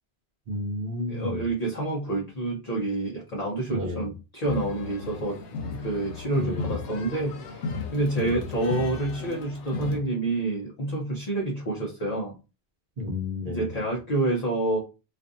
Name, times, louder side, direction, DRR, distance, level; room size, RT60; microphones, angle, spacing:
voice 1, 0.5-1.5 3.7-4.1 6.3-6.7 8.2-8.4 13.0-13.9, left 2 dB, 55° right, 2 dB, 0.8 m, -32 dB
voice 2, 1.1-12.3 13.4-14.8, right 2 dB, 45° left, -2 dB, 0.6 m, -28 dB
sound 1, 4.4-10.0, left 4 dB, 90° left, 0.9 m, -35 dB
2.5 x 2.4 x 2.5 m, 0.31 s
omnidirectional pair, 1.1 m